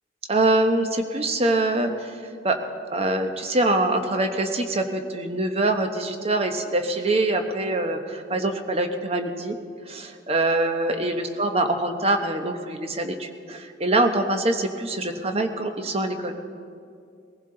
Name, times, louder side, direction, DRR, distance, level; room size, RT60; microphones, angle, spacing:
voice 1, 0.3-2.1 2.4-2.6 2.9-9.5 9.9-16.3, right 2 dB, 35° right, 6 dB, 1.0 m, -24 dB
22.0 x 15.5 x 3.9 m, 2.4 s
head